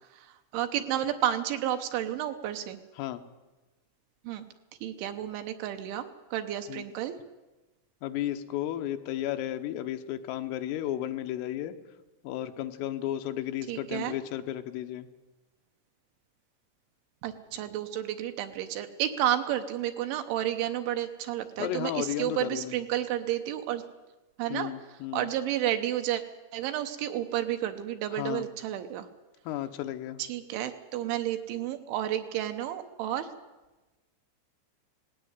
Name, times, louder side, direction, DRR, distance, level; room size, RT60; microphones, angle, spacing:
voice 1, 0.1-2.8 4.2-4.4 4.8-6.1 6.3-7.1 13.7-14.2 17.2-23.8 24.4-24.7 25.1-26.2 26.5-29.1 30.2-33.3, right 11 dB, 75° right, 7 dB, 3.1 m, -31 dB
voice 2, 8.0-11.8 12.2-15.1 21.6-22.7 24.5-25.3 28.1-28.5 29.5-30.2, left 12 dB, 80° left, 8 dB, 3.5 m, -33 dB
18.5 x 16.5 x 9.5 m, 1.1 s
omnidirectional pair, 5.9 m